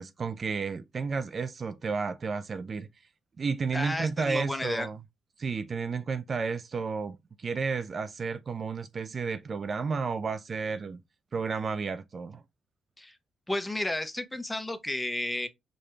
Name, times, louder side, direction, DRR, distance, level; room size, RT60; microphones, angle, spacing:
voice 1, 0.0-2.9 3.4-5.0 5.4-11.0 11.3-12.4, right 5 dB, 40° right, 0.3 m, -32 dB
voice 2, 3.7-4.9 13.0-13.2 13.5-15.5, left 1 dB, 10° left, 0.7 m, -32 dB
4.8 x 2.2 x 3.1 m
cardioid pair, 90°, 0 cm